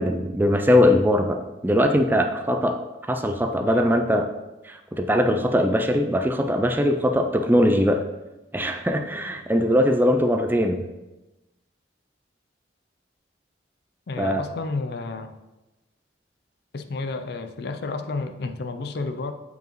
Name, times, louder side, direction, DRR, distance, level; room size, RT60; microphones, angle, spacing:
voice 1, 0.0-2.8 3.1-4.3 4.6-8.0 8.5-10.9 14.2-14.4, equal, 10° right, 5 dB, 0.3 m, -21 dB
voice 2, 14.1-15.3 16.7-19.3, left 3 dB, 60° left, 8 dB, 0.5 m, -31 dB
7.9 x 4.7 x 3.0 m, 1.0 s
head